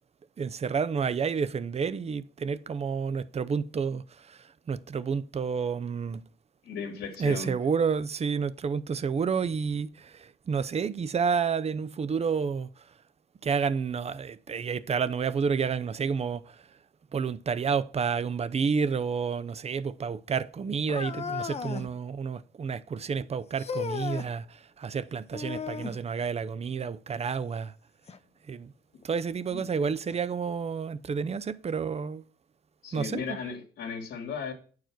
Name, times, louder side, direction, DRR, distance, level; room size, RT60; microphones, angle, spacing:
voice 1, 0.4-6.2 7.2-12.7 13.4-16.6 17.1-27.7 28.5-28.7 29.0-32.2 32.9-33.4, right 6 dB, 30° right, 0.6 m, -30 dB
voice 2, 6.6-7.5 29.5-29.6 32.8-34.5, left 5 dB, 80° left, 2.0 m, -36 dB
sound 1, 20.9-21.9 23.6-24.3 25.3-26.0 28.1-28.2 29.0-29.1 30.1-30.2, left 6 dB, 30° left, 0.7 m, -35 dB
8.9 x 4.7 x 6.1 m
cardioid pair, 90°, 20 cm